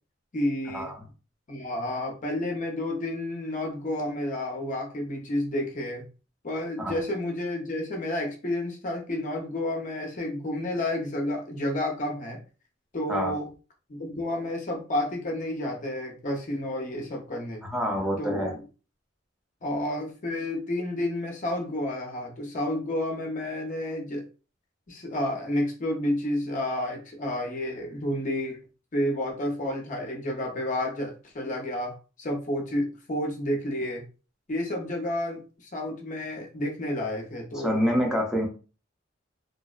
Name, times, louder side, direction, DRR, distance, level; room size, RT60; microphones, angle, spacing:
voice 1, 0.3-0.9 1.5-6.1 6.4-12.4 12.9-13.5 13.9-17.6 18.2-18.6 19.6-24.3 24.9-28.6 28.9-34.1 34.5-37.8, left 1 dB, 40° left, 1 dB, 0.6 m, -30 dB
voice 2, 17.6-18.5 37.6-38.5, equal, 5° right, -1 dB, 0.5 m, -27 dB
2.7 x 2.0 x 2.3 m, 0.34 s
head